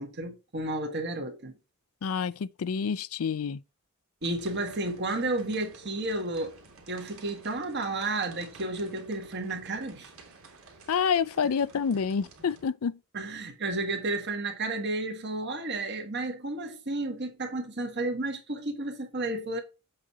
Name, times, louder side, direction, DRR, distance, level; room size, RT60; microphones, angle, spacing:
voice 1, 0.0-1.6 4.2-6.6 6.9-10.1 13.1-19.6, right 2 dB, 50° right, 1.7 m, -32 dB
voice 2, 2.0-3.6 10.9-13.0, left 6 dB, 70° left, 0.4 m, -28 dB
sound 1, 4.2-12.6, right 3 dB, 70° right, 2.3 m, -52 dB
7.6 x 4.2 x 4.8 m
head